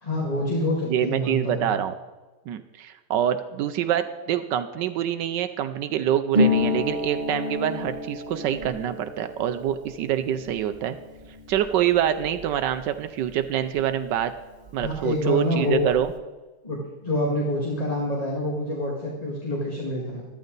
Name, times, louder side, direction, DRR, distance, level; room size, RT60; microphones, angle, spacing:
voice 1, 0.0-1.7 14.8-15.9 16.6-20.3, left 1 dB, 20° left, -2 dB, 2.0 m, -27 dB
voice 2, 0.9-1.9 2.5-11.0 11.5-14.3 14.7-16.1, right 10 dB, 80° right, 9 dB, 1.3 m, -25 dB
Harp, 6.3-13.8 14.1-15.2 15.4-16.1, left 2 dB, 30° right, 1.1 m, -30 dB
14.0 x 12.5 x 4.0 m, 1.2 s
omnidirectional pair, 1.9 m